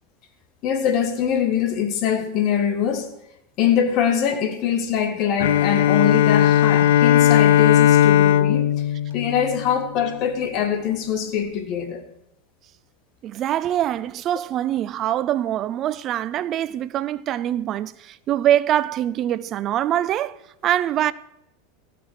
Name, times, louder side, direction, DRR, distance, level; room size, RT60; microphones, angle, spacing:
voice 1, 0.6-3.1 3.6-8.7 9.1-12.0, left 8 dB, 50° left, 1.9 m, -23 dB
Bowed string instrument, 5.4-10.1, left 11 dB, 80° left, 0.5 m, -17 dB
voice 2, 13.2-20.4 20.6-21.1, right 11 dB, 40° right, 0.4 m, -23 dB
15.0 x 6.0 x 7.9 m
supercardioid pair, 120°, 0 cm